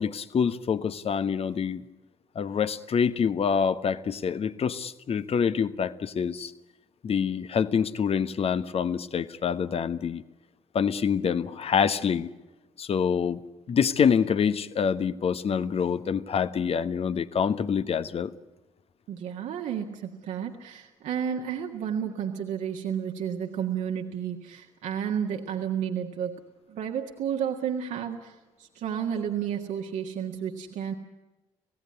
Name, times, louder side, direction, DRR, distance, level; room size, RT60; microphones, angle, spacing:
voice 1, 0.0-1.8 2.3-6.5 7.0-10.2 10.7-12.3 12.8-13.4 13.7-18.3, left 7 dB, 45° left, 13 dB, 1.2 m, -26 dB
voice 2, 19.1-26.4 26.7-30.9, right 8 dB, 60° right, 2 dB, 1.7 m, -31 dB
26.5 x 17.0 x 9.5 m, 1.1 s
figure-of-eight pair, 45°, 14 cm